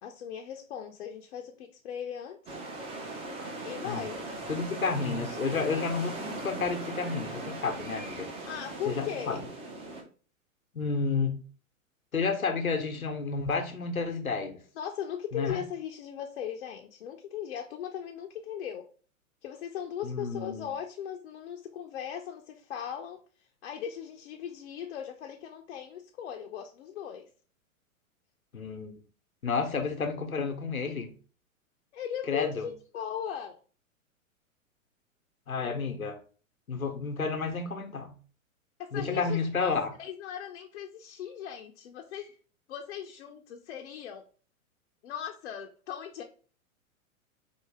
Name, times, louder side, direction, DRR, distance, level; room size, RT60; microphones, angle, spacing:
voice 1, 0.0-2.5 3.6-4.2 8.5-9.4 14.8-18.9 19.4-23.2 23.6-27.3 31.9-33.6 38.8-39.7 40.0-42.4 42.7-44.2 45.0-46.2, left 9 dB, 55° left, 2 dB, 0.6 m, -38 dB
sound 1, 2.5-10.0, right 2 dB, 15° right, 0.5 m, -39 dB
voice 2, 4.5-8.3 8.9-9.4 10.7-11.4 12.1-14.6 15.3-15.6 20.0-20.7 28.5-28.9 29.4-31.1 32.3-32.7 35.5-36.2 36.7-38.1 38.9-39.9, left 4 dB, 90° left, 5 dB, 0.8 m, -31 dB
4.6 x 2.7 x 3.3 m, 0.40 s
figure-of-eight pair, 105°, 41 cm